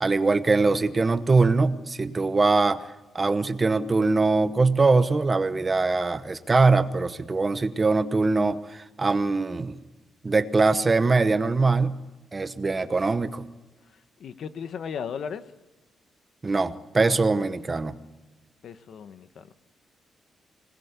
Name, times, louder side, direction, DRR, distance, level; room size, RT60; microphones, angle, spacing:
voice 1, 0.0-2.8 3.1-9.7 10.2-11.9 12.3-13.4 16.4-17.9, right 3 dB, 20° right, 12 dB, 1.0 m, -22 dB
voice 2, 14.2-15.5 18.6-19.5, left 7 dB, 60° left, 11 dB, 1.3 m, -36 dB
26.0 x 19.5 x 8.3 m, 1.2 s
cardioid pair, 155°, 0 cm